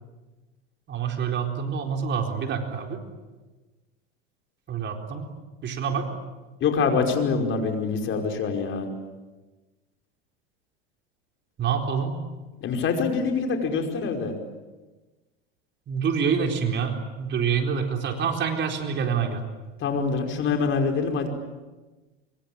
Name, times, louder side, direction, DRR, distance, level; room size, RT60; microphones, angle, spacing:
voice 1, 0.9-3.0 4.7-5.3 5.6-6.1 11.6-12.2 15.9-19.4, right 6 dB, 35° right, 4 dB, 4.2 m, -26 dB
voice 2, 6.6-8.9 12.6-14.3 19.8-21.3, left 5 dB, 40° left, 4 dB, 5.2 m, -25 dB
25.5 x 24.0 x 8.9 m, 1.2 s
supercardioid pair, 110°, 31 cm